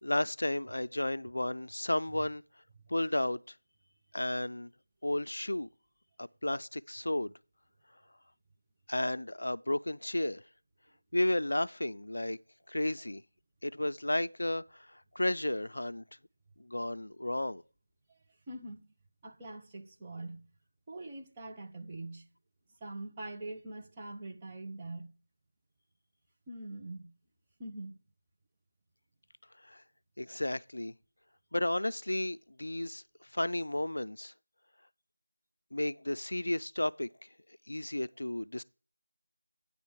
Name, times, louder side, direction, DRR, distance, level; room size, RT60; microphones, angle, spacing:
voice 1, 0.0-2.4 2.9-3.6 4.1-4.7 5.0-5.7 6.2-7.3 8.9-10.4 11.1-12.4 12.7-13.2 13.6-16.0 16.6-17.6 29.6-29.8 30.2-30.9 31.5-33.0 33.3-34.3 35.7-37.1 37.7-38.6, left 1 dB, 60° left, 0.4 m, -33 dB
voice 2, 18.5-18.8 19.2-20.5 20.9-22.3 22.8-25.1 26.5-27.1 27.6-28.0, right 2 dB, 15° right, 0.9 m, -43 dB
9.7 x 4.3 x 6.7 m
figure-of-eight pair, 170°, 0 cm